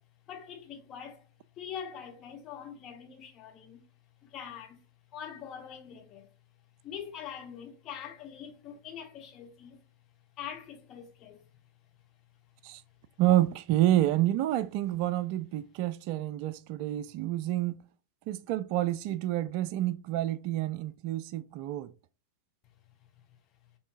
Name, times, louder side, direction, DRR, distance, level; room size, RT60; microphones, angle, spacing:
voice 1, 0.3-1.2 1.6-3.8 4.3-4.8 5.1-6.2 6.8-9.8 10.4-11.4, left 8 dB, 35° left, 1.1 m, -43 dB
voice 2, 13.2-17.8 18.3-21.9, right 14 dB, 45° right, 0.3 m, -28 dB
5.4 x 3.4 x 2.5 m
figure-of-eight pair, 90°, 0 cm